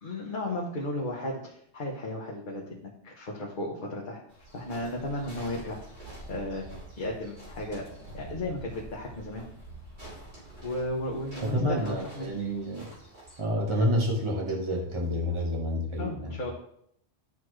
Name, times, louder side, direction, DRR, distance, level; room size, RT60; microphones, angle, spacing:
voice 1, 0.0-4.2 4.5-6.7 7.0-7.8 8.1-9.4 10.6-12.3 16.0-16.5, left 1 dB, 45° left, -3 dB, 1.2 m, -34 dB
sound 1, 4.3-13.4, right 1 dB, 75° right, 3.4 m, -46 dB
voice 2, 11.5-12.9 13.4-16.3, equal, 25° right, -1 dB, 1.3 m, -28 dB
12.0 x 4.1 x 3.2 m, 0.72 s
omnidirectional pair, 1.1 m